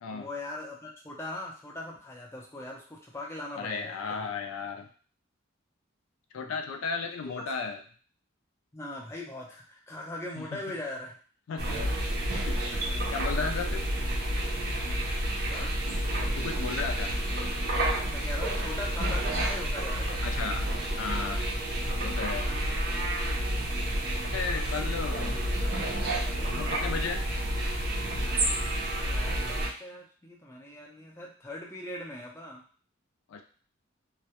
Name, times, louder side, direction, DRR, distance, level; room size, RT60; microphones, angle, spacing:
voice 1, 0.1-4.3 7.3-7.4 8.7-11.1 15.5-15.8 18.1-20.2 23.9-24.5 25.0-25.1 26.3-26.6 28.9-32.6, left 1 dB, 15° left, -2 dB, 0.4 m, -41 dB
voice 2, 3.6-4.9 6.3-7.8 10.4-10.6 11.5-11.8 12.5-12.6 13.1-13.9 16.4-17.2 20.2-20.7 21.0-21.4 22.0-22.5 24.2-25.4 26.5-27.2 33.3-33.4, left 5 dB, 85° left, 5 dB, 0.3 m, -34 dB
sound 1, 11.6-29.7, right 1 dB, 50° right, 0.5 m, -30 dB
2.3 x 2.1 x 2.8 m, 0.41 s
head